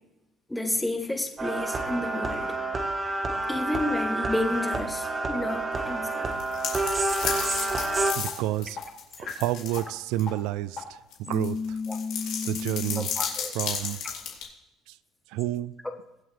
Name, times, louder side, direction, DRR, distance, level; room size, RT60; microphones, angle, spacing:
voice 1, 0.5-2.5 3.5-6.3 9.2-9.4 11.9-12.0 13.2-13.5, left 1 dB, 5° left, 5 dB, 1.2 m, -31 dB
sound 1, 1.4-8.1, right 2 dB, 25° right, 1.3 m, -29 dB
sound 2, 6.3-9.8 10.2-10.3 11.1-14.4, left 8 dB, 75° left, 3.1 m, -33 dB
sound 3, 7.3-7.4 7.8-7.9 8.3-8.4 8.8-8.9 9.3-9.4 9.8-9.9 10.3-10.4 10.8-10.9 11.3-13.0, left 5 dB, 50° left, 5.2 m, -33 dB
voice 2, 8.2-8.8 9.4-11.8 12.4-13.1 13.5-14.0 14.9-15.0 15.3-15.7, right 14 dB, 85° right, 17 dB, 0.5 m, -30 dB
23.0 x 7.8 x 3.3 m, 0.91 s
cardioid pair, 140°, 0 cm